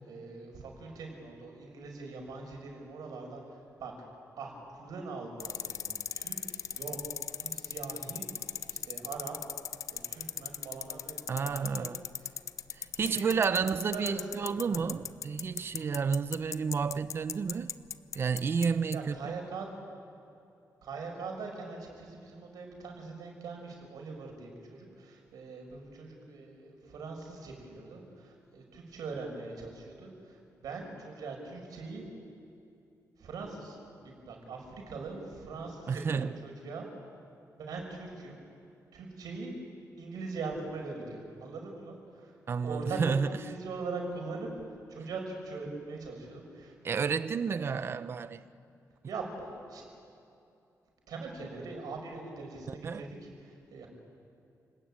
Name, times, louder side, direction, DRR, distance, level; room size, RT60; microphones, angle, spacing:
voice 1, 0.1-3.9 4.4-7.0 7.3-9.4 9.9-11.9 12.2-12.4 12.8-13.4 13.6-14.9 18.9-19.7 20.8-32.0 33.2-36.9 37.6-38.4 38.9-39.5 40.0-42.4 42.6-44.5 44.9-47.2 49.1-49.9 51.1-53.9, right 3 dB, 90° right, 2 dB, 6.1 m, -42 dB
sound 1, 5.4-18.7 18.9-19.0, left 8 dB, 55° left, 0.7 m, -37 dB
voice 2, 11.3-12.0 12.7-17.7 18.1-19.4 35.9-36.4 42.5-43.3 46.8-48.4 52.8-53.1, right 5 dB, 40° right, 13 dB, 0.8 m, -31 dB
29.0 x 20.0 x 9.0 m, 2.6 s
wide cardioid pair, 165°, 6 cm